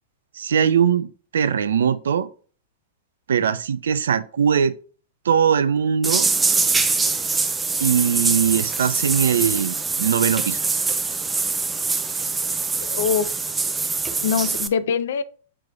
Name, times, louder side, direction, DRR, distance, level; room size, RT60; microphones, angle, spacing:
voice 1, 0.4-2.3 3.3-4.8 5.3-6.3 7.8-10.6, right 7 dB, 75° right, 0.4 m, -21 dB
sound 1, 6.0-14.7, right 4 dB, 15° right, 0.5 m, -23 dB
voice 2, 12.8-13.4 14.2-15.2, left 7 dB, 70° left, 0.4 m, -23 dB
6.0 x 3.2 x 2.3 m
hypercardioid pair, 105°, 0 cm